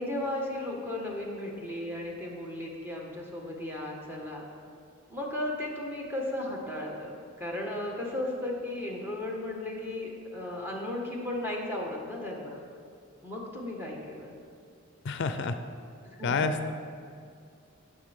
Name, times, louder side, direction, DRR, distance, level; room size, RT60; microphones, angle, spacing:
voice 1, 0.0-4.4 5.1-12.6 13.2-14.3 16.0-16.5, left 1 dB, 10° right, -2 dB, 1.7 m, -35 dB
voice 2, 15.0-15.6 16.2-16.7, left 4 dB, 60° left, 8 dB, 0.5 m, -28 dB
17.5 x 6.8 x 3.7 m, 2.4 s
head